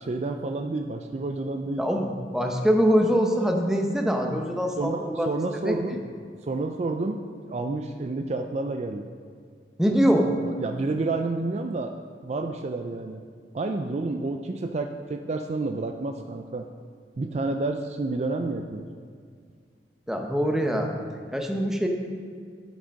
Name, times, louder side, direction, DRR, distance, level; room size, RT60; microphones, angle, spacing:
voice 1, 0.0-1.9 4.8-6.0 6.4-9.1 10.4-11.9 12.2-13.2 13.5-16.7 17.2-18.9, right 3 dB, 40° right, 5 dB, 0.4 m, -30 dB
voice 2, 1.8-5.3 5.6-5.8 9.8-10.3 20.1-20.9 21.3-21.9, equal, 5° right, 2 dB, 0.8 m, -23 dB
12.5 x 5.1 x 5.2 m, 2.1 s
head